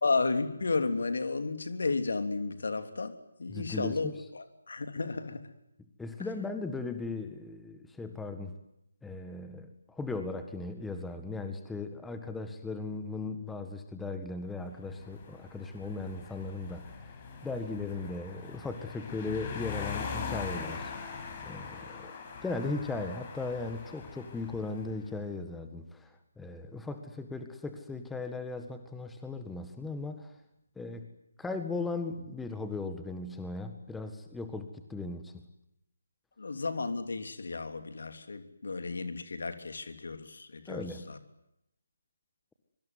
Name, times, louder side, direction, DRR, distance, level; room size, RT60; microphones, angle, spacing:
voice 1, 0.0-5.5 36.4-41.2, left 3 dB, 60° left, 8 dB, 3.2 m, -33 dB
voice 2, 3.5-4.1 6.0-8.6 9.0-20.9 21.4-22.1 22.4-30.3 30.8-31.1 31.4-35.4 40.7-41.1, left 3 dB, 5° left, 7 dB, 1.7 m, -37 dB
sound 1, 14.7-25.0, left 5 dB, 25° left, 5.9 m, -42 dB
25.0 x 24.0 x 9.7 m, 0.83 s
figure-of-eight pair, 150°, 0 cm